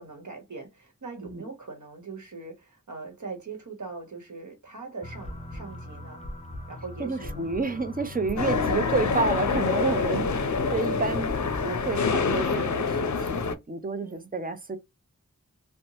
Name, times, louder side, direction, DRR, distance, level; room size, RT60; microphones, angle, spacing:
voice 1, 0.0-6.2 6.7-7.4 9.8-10.2 14.0-14.3, right 4 dB, 70° right, 1.1 m, -40 dB
sound 1, 5.0-11.8, left 1 dB, 20° left, 0.6 m, -40 dB
voice 2, 7.0-10.3 10.7-11.3 11.6-14.8, right 4 dB, 30° right, 0.5 m, -30 dB
sound 2, 8.4-13.6, left 5 dB, 65° left, 0.5 m, -26 dB
2.8 x 2.1 x 2.8 m
wide cardioid pair, 65°, 31 cm